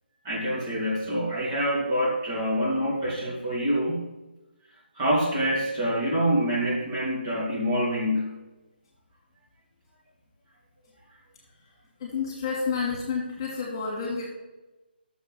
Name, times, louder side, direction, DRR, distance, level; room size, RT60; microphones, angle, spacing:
voice 1, 0.2-4.0 5.0-8.4, equal, 20° right, -5 dB, 2.8 m, -26 dB
voice 2, 12.0-14.3, left 5 dB, 25° left, -1 dB, 2.7 m, -30 dB
12.5 x 7.2 x 5.6 m, 1.0 s
hypercardioid pair, 170°, 6 cm